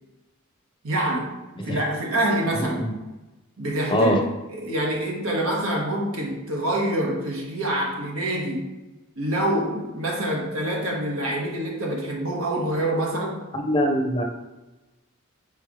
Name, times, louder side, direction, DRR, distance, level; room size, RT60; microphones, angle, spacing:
voice 1, 0.8-1.3 1.6-2.9 3.6-4.1 4.5-8.7 9.2-13.4, right 1 dB, 75° right, -1 dB, 1.5 m, -26 dB
voice 2, 2.5-2.9 3.9-4.2 13.5-14.2, equal, 25° left, 3 dB, 0.7 m, -23 dB
4.7 x 4.1 x 4.8 m, 1.1 s
head